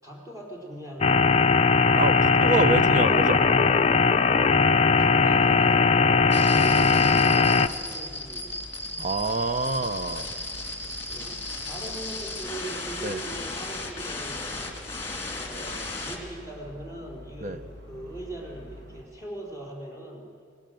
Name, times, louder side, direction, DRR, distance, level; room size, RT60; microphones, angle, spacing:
voice 1, 0.0-1.5 2.2-2.4 2.8-3.3 5.0-8.6 11.1-14.8 15.3-20.3, right 1 dB, 15° right, -1 dB, 4.1 m, -41 dB
sound 1, 1.0-7.7, left 4 dB, 35° left, 0.5 m, -19 dB
voice 2, 1.9-3.4 9.0-10.3 13.0-13.2 17.4-17.6, right 2 dB, 40° right, 11 dB, 0.9 m, -26 dB
sound 2, 2.8-19.0, left 1 dB, 60° right, 5.4 m, -48 dB
sound 3, 6.3-16.2, left 2 dB, 15° left, 2.9 m, -35 dB
23.5 x 20.0 x 7.8 m, 2.2 s
head